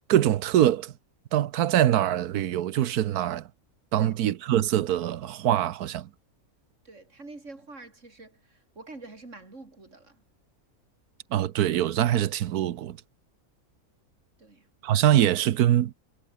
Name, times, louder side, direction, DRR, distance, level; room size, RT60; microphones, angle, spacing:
voice 1, 0.1-0.9 1.3-3.4 3.9-6.1 11.3-13.0 14.8-15.9, right 12 dB, 90° right, 1.3 m, -23 dB
voice 2, 6.8-10.2 14.4-14.7, right 3 dB, 55° right, 4.6 m, -46 dB
omnidirectional pair, 1.6 m